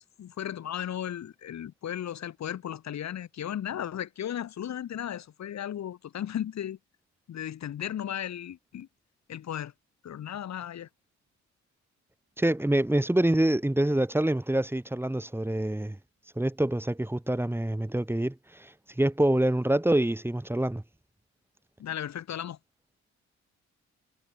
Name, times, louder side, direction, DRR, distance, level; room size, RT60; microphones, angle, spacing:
voice 1, 0.0-6.8 7.3-8.9 9.3-9.7 10.0-10.9 21.8-22.6, left 10 dB, 65° left, 2.9 m, -35 dB
voice 2, 12.4-16.0 16.4-18.7 19.0-20.8, right 1 dB, 5° right, 3.9 m, -26 dB
cardioid pair, 90°, 30 cm